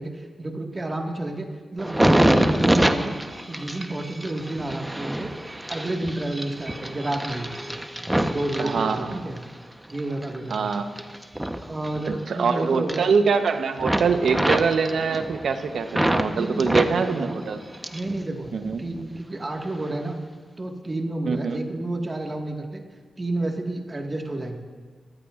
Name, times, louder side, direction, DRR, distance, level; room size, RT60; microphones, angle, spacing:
voice 1, 0.0-3.2 3.5-5.3 5.7-7.5 8.1-9.4 9.9-10.7 11.6-13.1 16.3-17.4 17.9-20.2 20.6-22.8 23.2-24.6, right 2 dB, 35° right, 2 dB, 1.7 m, -30 dB
sound 1, 1.8-9.4 9.9-12.5 12.7-13.5 13.8-16.3 16.6-18.2 18.4-19.2 19.7-19.9, right 1 dB, 15° right, 1.0 m, -26 dB
voice 2, 8.6-9.2 10.5-10.9 12.3-17.6 18.5-18.8 21.3-21.6, right 5 dB, 80° right, 8 dB, 0.9 m, -24 dB
23.5 x 15.0 x 2.5 m, 1.5 s
cardioid pair, 50°, 0 cm